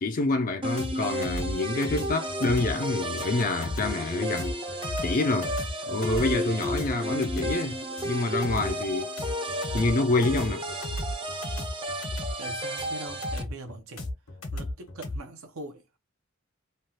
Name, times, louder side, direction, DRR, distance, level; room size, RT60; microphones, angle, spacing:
voice 1, 0.0-4.6 5.0-5.5 5.9-9.1 9.7-10.6, left 2 dB, 40° left, 0.4 m, -27 dB
sound 1, 0.6-13.4, equal, 25° right, 0.6 m, -33 dB
sound 2, 0.8-15.2, left 1 dB, 70° left, 1.2 m, -35 dB
voice 2, 12.4-14.1 14.5-16.0, right 2 dB, 75° right, 0.7 m, -42 dB
3.1 x 2.4 x 2.8 m
head